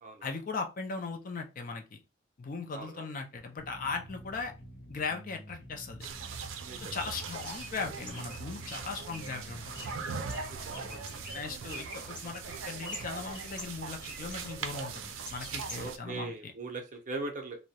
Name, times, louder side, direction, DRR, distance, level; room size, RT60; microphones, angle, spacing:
voice 1, 0.2-2.0 2.4-4.5 4.9-6.1 6.8-9.9 11.1-16.5, left 4 dB, 45° left, 5 dB, 0.4 m, -38 dB
voice 2, 2.7-3.1 6.6-7.0 10.5-11.2 15.8-17.6, right 3 dB, 40° right, 3 dB, 0.5 m, -40 dB
sound 1, 3.6-11.6, equal, 85° left, 0.7 m, -49 dB
sound 2, 6.0-16.0, right 5 dB, 90° right, 0.4 m, -41 dB
Bird, 7.4-16.2, equal, 25° left, 0.8 m, -48 dB
2.2 x 2.0 x 2.7 m, 0.28 s
head